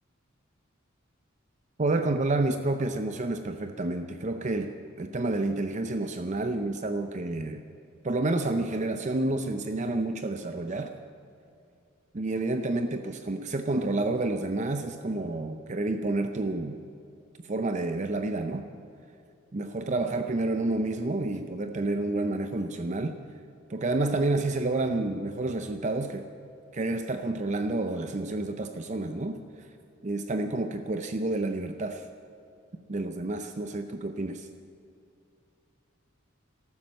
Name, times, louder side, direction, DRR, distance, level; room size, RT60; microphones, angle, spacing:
voice 1, 1.8-7.6 8.0-10.9 12.1-16.8 17.5-18.7 19.5-23.2 23.7-26.2 26.7-29.4 30.0-32.1 32.9-34.5, right 2 dB, 35° right, 7 dB, 0.6 m, -29 dB
13.5 x 13.0 x 7.6 m, 2.5 s
head